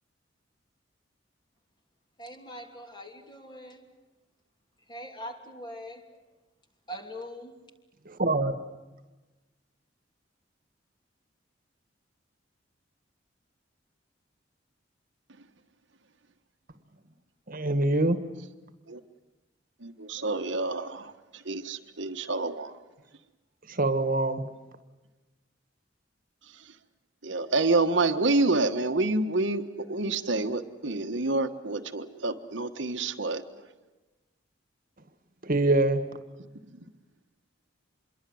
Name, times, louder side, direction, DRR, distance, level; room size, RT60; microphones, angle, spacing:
voice 1, 2.2-3.9 4.9-6.1 6.9-7.6, equal, 25° left, 4 dB, 2.9 m, -42 dB
voice 2, 8.0-8.5 17.5-18.2 23.7-24.4 35.4-36.0, right 2 dB, 50° right, 10 dB, 1.8 m, -24 dB
voice 3, 19.8-22.7 27.2-33.4, right 2 dB, 75° right, 6 dB, 1.5 m, -28 dB
26.0 x 22.5 x 7.8 m, 1.1 s
head